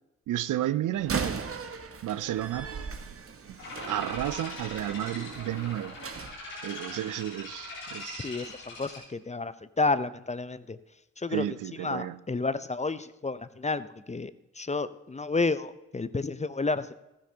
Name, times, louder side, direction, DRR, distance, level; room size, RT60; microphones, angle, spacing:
voice 1, 0.3-1.5 2.0-2.7 3.5-3.6 3.9-5.9 6.6-8.3 11.3-12.2, right 13 dB, 65° right, 0.6 m, -32 dB
Slam, 0.9-6.3, right 5 dB, 40° right, 1.2 m, -37 dB
sound 1, 3.6-9.0, left 2 dB, 90° left, 3.7 m, -42 dB
voice 2, 8.2-10.8 11.2-11.5 11.8-17.0, left 3 dB, 20° left, 0.7 m, -31 dB
14.5 x 12.5 x 2.9 m
hypercardioid pair, 40°, 34 cm